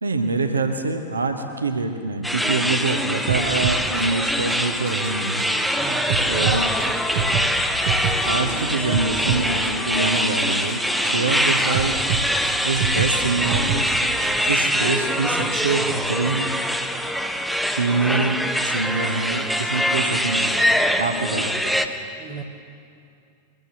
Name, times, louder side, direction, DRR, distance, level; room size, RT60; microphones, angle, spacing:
voice 1, 0.0-5.4 6.3-6.7 8.2-12.0 12.6-14.1 14.5-16.5 17.7-18.4 18.6-21.5, right 3 dB, 75° right, 5 dB, 1.1 m, -25 dB
sound 1, 2.2-21.9, equal, ahead, 0.8 m, -23 dB
sound 2, 3.3-14.5, right 6 dB, 55° right, 0.9 m, -29 dB
Trumpet, 4.6-11.2, left 6 dB, 30° left, 1.2 m, -37 dB
voice 2, 5.8-7.3 22.2-22.4, right 6 dB, 25° right, 0 dB, 1.1 m, -35 dB
23.0 x 15.5 x 2.9 m, 2.5 s
figure-of-eight pair, 90°, 0 cm